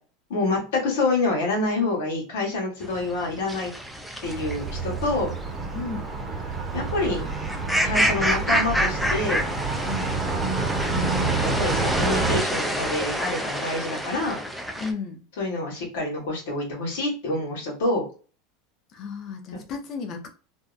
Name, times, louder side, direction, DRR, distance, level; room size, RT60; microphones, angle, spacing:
voice 1, 0.3-3.7 4.2-5.3 6.7-7.2 7.8-9.4 10.9-14.4 15.4-18.1 19.5-19.6, left 2 dB, 80° left, 1.2 m, -27 dB
sound 1, 2.8-14.9, equal, ahead, 0.5 m, -28 dB
Car passing by, 4.2-12.4, right 4 dB, 20° right, 0.9 m, -28 dB
voice 2, 5.7-6.1 9.8-10.2 14.8-15.2 18.9-20.3, left 5 dB, 45° left, 0.6 m, -34 dB
2.6 x 2.3 x 2.4 m
supercardioid pair, 125°, 0 cm